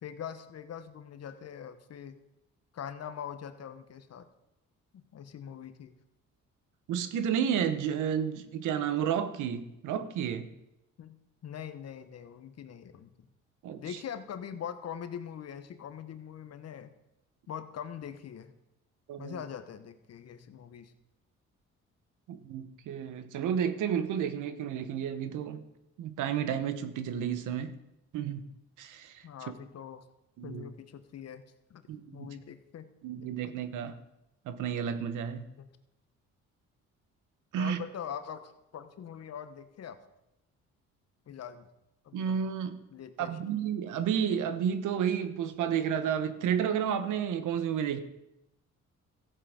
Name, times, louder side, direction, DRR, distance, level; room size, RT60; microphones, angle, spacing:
voice 1, 0.0-2.2 2.7-4.3 4.9-5.9 11.0-13.3 13.8-16.9 17.5-18.5 19.2-20.9 29.2-30.0 30.4-31.4 31.7-31.8 32.1-32.9 33.1-33.6 35.6-35.7 37.6-40.0 41.3-41.7 42.0-42.4 42.9-43.4, left 8 dB, 55° left, 11 dB, 1.1 m, -43 dB
voice 2, 6.9-10.5 13.6-14.0 19.1-19.4 22.3-25.6 26.0-27.7 28.1-28.5 28.8-29.3 30.4-30.6 31.9-32.3 33.0-34.0 34.4-35.5 37.5-37.8 42.1-42.8 43.2-48.0, right 8 dB, 85° right, 12 dB, 1.0 m, -31 dB
14.5 x 7.7 x 5.0 m, 0.88 s
cardioid pair, 90°, 30 cm